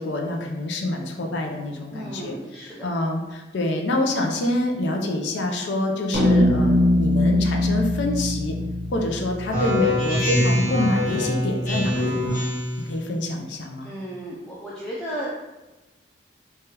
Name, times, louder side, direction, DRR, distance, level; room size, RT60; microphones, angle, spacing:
voice 1, 0.0-8.6 8.9-12.5 12.8-13.9, left 1 dB, 75° left, 2 dB, 0.5 m, -26 dB
voice 2, 1.9-2.9 12.6-13.0 13.8-15.4, equal, 5° left, -8 dB, 0.4 m, -34 dB
sound 1, 6.1-10.6, left 1 dB, 55° right, 0.6 m, -22 dB
Speech synthesizer, 9.5-12.8, left 1 dB, 45° left, 1.0 m, -23 dB
3.1 x 2.3 x 2.9 m, 1.1 s
head